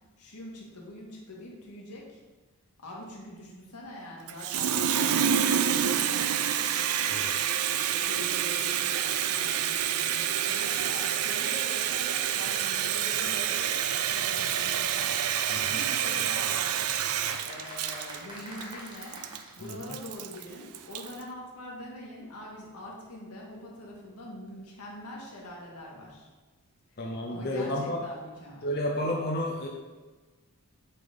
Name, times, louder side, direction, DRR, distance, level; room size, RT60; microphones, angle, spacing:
voice 1, 0.2-2.2 2.8-6.5 7.8-13.8 14.1-15.2 15.6-16.8 17.4-19.2 19.6-26.3 27.3-28.7, left 1 dB, 90° left, -3 dB, 2.0 m, -44 dB
Water tap faucet, 4.3-21.2, right 9 dB, 75° right, 0.5 m, -28 dB
voice 2, 7.1-7.4 15.5-15.9 19.6-19.8 27.0-28.0 28.6-29.7, left 1 dB, 45° left, -1 dB, 0.8 m, -31 dB
sound 1, 17.1-20.2 20.5-20.6 20.8-20.9 21.0-21.1, right 1 dB, 20° right, 1.9 m, -44 dB
8.2 x 3.9 x 5.4 m, 1.3 s
head